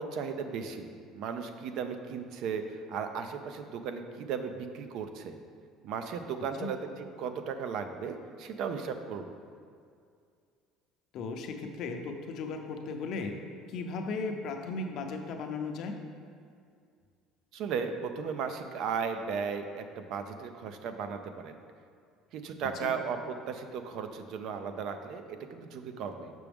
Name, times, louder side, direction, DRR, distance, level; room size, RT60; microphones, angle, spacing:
voice 1, 0.0-5.4 5.8-9.3 17.5-21.6 22.3-26.3, right 6 dB, 60° right, 7 dB, 0.5 m, -36 dB
voice 2, 11.1-13.3 13.7-16.0 22.8-22.9, left 4 dB, 55° left, 4 dB, 0.6 m, -36 dB
6.0 x 6.0 x 3.5 m, 2.2 s
cardioid pair, 145°, 0 cm